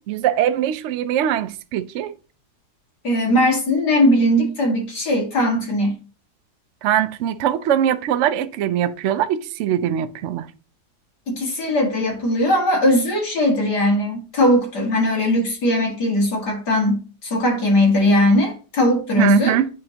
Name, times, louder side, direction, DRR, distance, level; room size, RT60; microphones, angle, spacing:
voice 1, 0.1-2.1 6.8-10.5 19.2-19.7, right 10 dB, 70° right, 0.7 m, -21 dB
voice 2, 3.0-5.9 11.3-19.6, left 1 dB, 90° left, 2.5 m, -19 dB
9.4 x 3.8 x 2.8 m
omnidirectional pair, 1.7 m